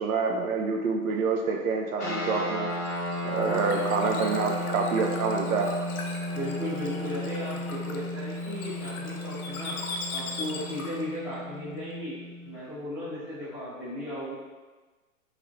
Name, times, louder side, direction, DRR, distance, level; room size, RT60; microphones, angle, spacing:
voice 1, 0.0-2.7 3.2-5.7, right 4 dB, 80° right, 3 dB, 0.6 m, -27 dB
sound 1, 2.0-12.6, left 1 dB, 15° left, 0.3 m, -34 dB
Bird / Water, 2.7-11.1, left 3 dB, 85° left, 0.6 m, -40 dB
voice 2, 6.3-9.8 10.1-12.2 12.4-14.3, left 1 dB, 5° right, -14 dB, 0.8 m, -36 dB
3.0 x 2.9 x 2.5 m, 1.3 s
hypercardioid pair, 155°, 42 cm